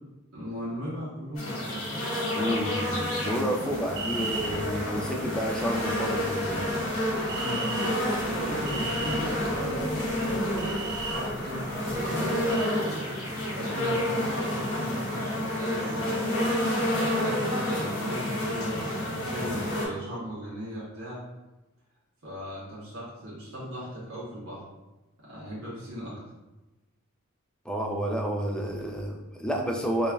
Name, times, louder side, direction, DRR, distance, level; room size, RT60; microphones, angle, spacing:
voice 1, 0.3-2.0 7.3-12.8 13.4-16.2 16.9-21.2 22.2-24.6 25.2-26.2, equal, 70° right, -7 dB, 1.1 m, -37 dB
sound 1, 1.3-19.8, left 1 dB, 80° left, 1.4 m, -29 dB
voice 2, 2.4-6.8 27.7-30.1, equal, 5° left, 1 dB, 0.3 m, -30 dB
sound 2, 3.6-12.7, right 3 dB, 50° right, 0.6 m, -39 dB
5.1 x 2.5 x 2.2 m, 1.1 s
head